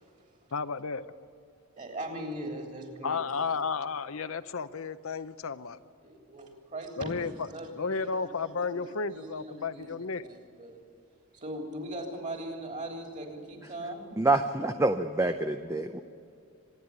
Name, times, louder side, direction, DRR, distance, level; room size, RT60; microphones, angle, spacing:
voice 1, 0.5-1.0 3.0-5.8 7.0-7.5 7.8-10.2, left 5 dB, 70° left, 12 dB, 0.7 m, -33 dB
voice 2, 1.8-3.2 6.0-10.0 10.3-10.8 11.3-14.1, right 1 dB, 35° right, 3 dB, 3.4 m, -40 dB
voice 3, 14.2-16.0, right 2 dB, 15° right, 7 dB, 0.6 m, -26 dB
25.0 x 10.5 x 9.7 m, 2.6 s
head